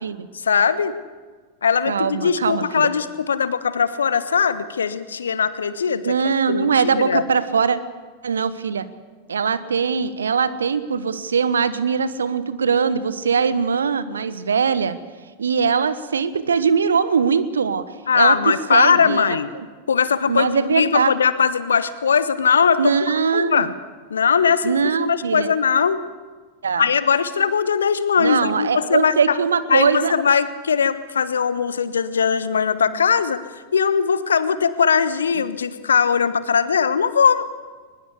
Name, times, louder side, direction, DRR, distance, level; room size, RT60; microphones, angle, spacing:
voice 1, 0.3-1.0 1.6-6.1 6.5-6.7 7.0-7.2 18.1-19.5 19.9-23.7 24.1-24.7 25.0-26.0 26.8-29.4 29.7-33.4 33.7-37.4, left 6 dB, 70° left, 14 dB, 1.3 m, -20 dB
voice 2, 1.9-2.9 5.9-7.8 8.2-8.8 9.3-15.0 15.4-17.8 18.1-19.4 20.3-21.1 22.8-23.7 24.6-25.5 26.6-26.9 28.2-30.1, right 6 dB, 70° right, 15 dB, 1.3 m, -21 dB
22.0 x 20.5 x 8.2 m, 1.4 s
figure-of-eight pair, 90°, 0 cm